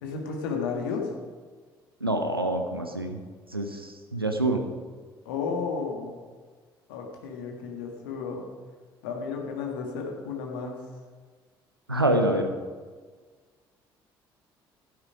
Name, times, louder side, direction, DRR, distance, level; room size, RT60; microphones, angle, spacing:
voice 1, 0.0-1.1 5.3-6.1 6.9-8.4 9.0-10.8, left 5 dB, 70° left, 1 dB, 1.7 m, -32 dB
voice 2, 2.0-3.2 3.5-3.8 4.1-4.6 11.9-12.5, right 1 dB, 90° right, 5 dB, 0.8 m, -25 dB
12.0 x 9.3 x 5.0 m, 1.5 s
figure-of-eight pair, 45°, 12 cm